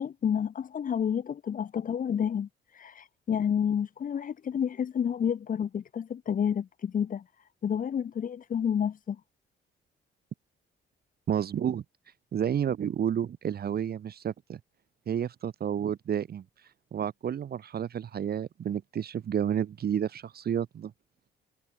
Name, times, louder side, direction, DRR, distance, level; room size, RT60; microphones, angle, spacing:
voice 1, 0.0-2.5 2.8-7.2 7.6-9.2, left 8 dB, 45° left, 0.8 m, -29 dB
voice 2, 11.3-11.8 12.3-14.6 15.1-16.4 16.9-20.9, right 9 dB, 50° right, 1.1 m, -30 dB
cardioid pair, 90°, 20 cm